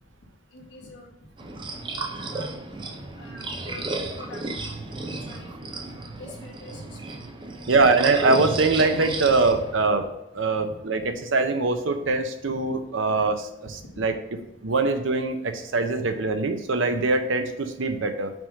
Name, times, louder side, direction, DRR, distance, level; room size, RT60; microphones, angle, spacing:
voice 1, 0.5-1.1 2.3-2.6 3.1-4.4 5.2-5.9 6.2-7.2 13.1-13.2 13.6-14.1 16.0-16.1, left 2 dB, 65° left, -2 dB, 1.7 m, -45 dB
sound 1, 1.4-9.9, right 3 dB, 25° right, 0.6 m, -33 dB
voice 2, 7.7-10.1 10.3-14.1 14.6-18.3, right 3 dB, 70° right, 7 dB, 0.7 m, -23 dB
6.0 x 3.6 x 5.2 m, 0.84 s
head